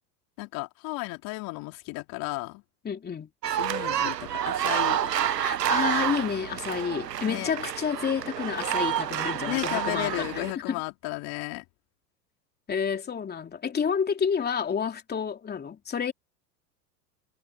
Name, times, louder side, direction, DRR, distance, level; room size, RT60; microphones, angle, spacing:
voice 1, 0.4-2.6 3.5-5.4 7.3-7.5 9.4-11.6, left 24 dB, 45° left, 2.7 m, -34 dB
voice 2, 2.8-3.3 5.4-10.8 12.7-16.1, left 7 dB, 20° left, 3.1 m, -29 dB
sound 1, 3.4-10.5, right 10 dB, 90° right, 0.8 m, -29 dB
hypercardioid pair, 95°, 47 cm